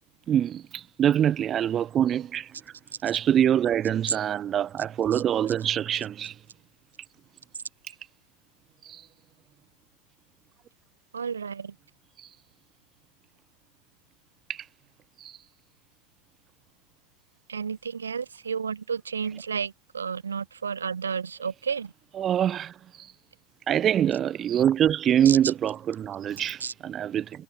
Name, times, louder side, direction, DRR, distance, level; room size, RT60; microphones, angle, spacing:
voice 1, 0.3-2.5 3.0-6.3 8.8-9.0 12.2-12.3 14.5-14.6 15.2-15.4 22.2-23.1 23.7-27.3, right 10 dB, 25° right, 0.4 m, -25 dB
voice 2, 5.1-5.5 11.1-11.7 17.5-21.9 25.2-25.4 26.6-26.7, right 6 dB, 70° right, 0.8 m, -32 dB
figure-of-eight pair, 90°, 0 cm